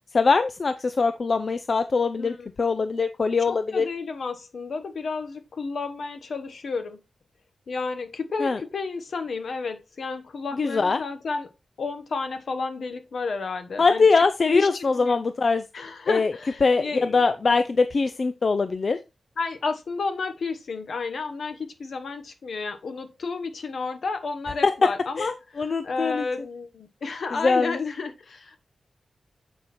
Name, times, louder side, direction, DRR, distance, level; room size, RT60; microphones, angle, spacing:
voice 1, 0.1-3.9 8.4-8.6 10.6-11.0 13.8-15.6 16.1-16.3 16.6-19.0 24.6-24.7 25.2-25.3 25.6-26.2 27.3-27.8, left 4 dB, 50° left, 0.4 m, -22 dB
voice 2, 2.2-2.5 3.5-7.0 7.7-11.5 11.8-14.1 14.5-15.2 15.7-17.3 19.4-28.6, left 4 dB, 70° left, 1.2 m, -31 dB
8.0 x 4.4 x 4.2 m
wide cardioid pair, 105°, 0 cm